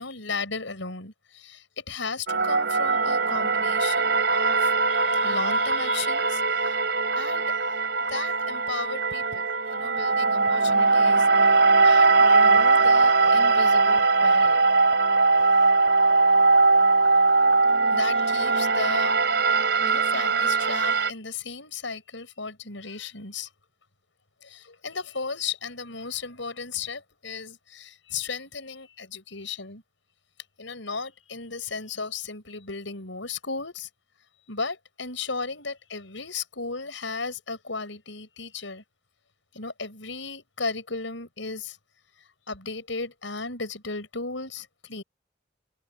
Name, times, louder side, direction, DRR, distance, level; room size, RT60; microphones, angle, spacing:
voice 1, 0.0-6.8 7.2-7.6 8.1-14.7 15.4-15.8 17.9-19.2 19.8-23.5 24.4-29.8 30.6-33.9 34.5-38.8 39.5-41.8 42.5-45.0, left 4 dB, 85° left, 6.0 m, -35 dB
sound 1, 2.3-21.1, right 3 dB, 65° right, 3.9 m, -21 dB
head